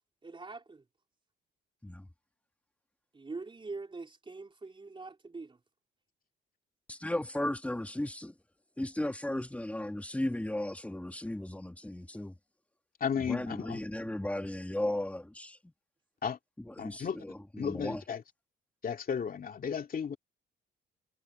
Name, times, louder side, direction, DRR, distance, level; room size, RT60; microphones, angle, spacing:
voice 1, 0.2-0.8 3.1-5.6, right 3 dB, 25° right, 3.9 m, -43 dB
voice 2, 6.9-8.3 8.8-12.3 13.3-15.6 16.7-18.0, left 1 dB, 5° left, 2.1 m, -35 dB
voice 3, 13.0-13.8 16.2-16.4 16.8-17.2 17.6-18.2 18.8-20.2, left 7 dB, 45° left, 2.4 m, -34 dB
cardioid pair, 90°, 20 cm